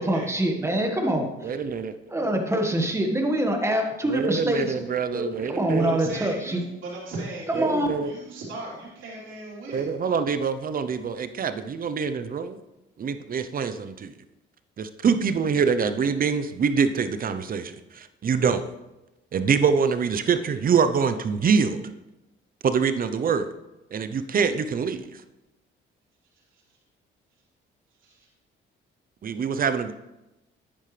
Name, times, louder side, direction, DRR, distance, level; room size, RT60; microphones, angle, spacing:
voice 1, 0.0-1.6 2.1-4.9 5.1-6.6 7.5-7.9, right 1 dB, 15° right, 3 dB, 1.7 m, -25 dB
voice 2, 1.4-1.9 4.0-6.0 7.5-8.1 9.7-12.6 13.0-14.1 14.8-18.6 19.3-21.8 22.6-23.5 23.9-25.2 29.2-29.9, right 6 dB, 45° right, 11 dB, 0.7 m, -25 dB
voice 3, 5.8-7.8 8.0-9.9 28.1-28.2, right 2 dB, 75° right, -5 dB, 3.7 m, -37 dB
10.0 x 8.9 x 3.3 m, 0.98 s
cardioid pair, 90°, 20 cm